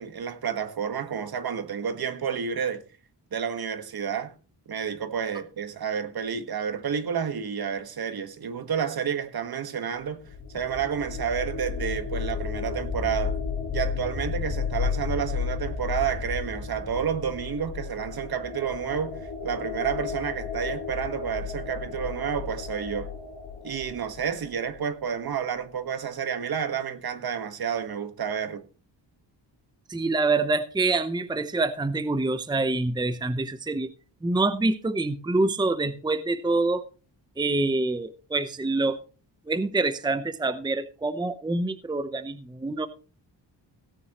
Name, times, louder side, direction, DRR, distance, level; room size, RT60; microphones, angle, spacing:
voice 1, 0.0-2.8 3.3-4.3 4.7-10.2 10.5-13.4 13.7-23.1 23.6-28.6, right 7 dB, 55° right, 1.5 m, -30 dB
sound 1, 10.0-24.8, left 6 dB, 75° left, 2.4 m, -33 dB
voice 2, 29.9-33.9 34.2-36.8 37.4-39.0 39.5-42.9, right 2 dB, 10° right, 0.7 m, -26 dB
17.5 x 9.3 x 3.0 m
wide cardioid pair, 110°, 43 cm